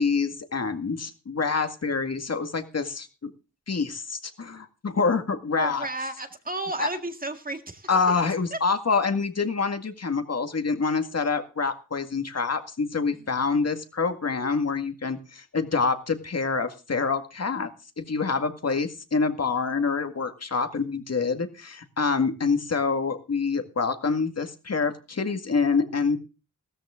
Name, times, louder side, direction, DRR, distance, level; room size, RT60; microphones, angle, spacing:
voice 1, 0.0-3.3 3.7-5.9 6.8-6.9 7.9-17.7 18.0-26.2, left 4 dB, 50° left, 2.0 m, -26 dB
voice 2, 5.6-7.9 8.5-8.6 13.1-13.3, right 2 dB, 25° right, 1.9 m, -33 dB
17.0 x 13.5 x 3.7 m
wide cardioid pair, 110°, 32 cm